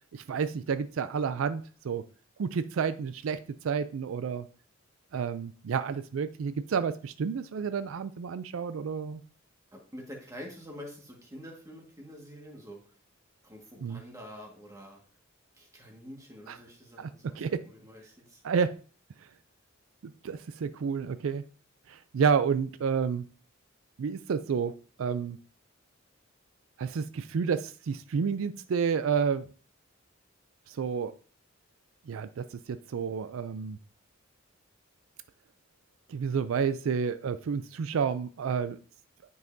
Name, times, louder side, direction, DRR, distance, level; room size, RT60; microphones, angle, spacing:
voice 1, 0.1-2.0 2.4-3.4 3.6-4.5 5.1-9.2 13.8-14.0 16.5-16.6 17.0-17.1 17.4-17.6 18.4-18.7 20.0-21.4 21.9-23.2 24.0-24.7 25.0-25.4 26.8-29.5 30.7-31.1 32.1-33.8 36.1-38.8, right 6 dB, 80° right, 13 dB, 0.4 m, -30 dB
voice 2, 9.7-12.8 13.4-15.0 15.6-18.4, equal, 15° right, 0 dB, 1.6 m, -47 dB
9.1 x 5.5 x 2.6 m, 0.40 s
head